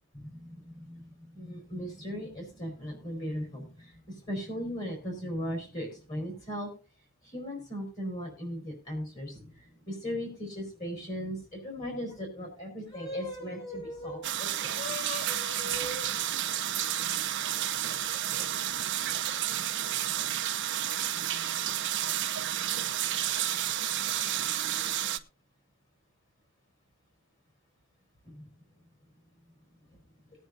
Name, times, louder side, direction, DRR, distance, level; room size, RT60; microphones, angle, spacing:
voice 1, 0.1-1.1 1.3-6.7 7.2-9.5 9.9-16.1 28.2-28.4, equal, 35° left, 1 dB, 4.7 m, -38 dB
sound 1, 14.2-25.2, right 11 dB, 55° right, 0.8 m, -31 dB
20.0 x 9.2 x 2.7 m, 0.34 s
head